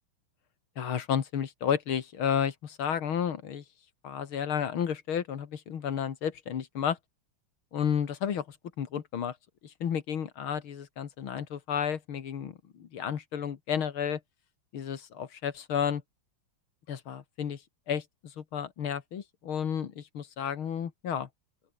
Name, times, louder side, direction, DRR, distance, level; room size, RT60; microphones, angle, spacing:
voice 1, 0.8-3.6 4.0-7.0 7.7-9.4 9.6-14.2 14.7-16.0 16.9-17.6 17.9-21.3, left 8 dB, 75° left, 2.5 m, -32 dB
open air
omnidirectional pair, 2.3 m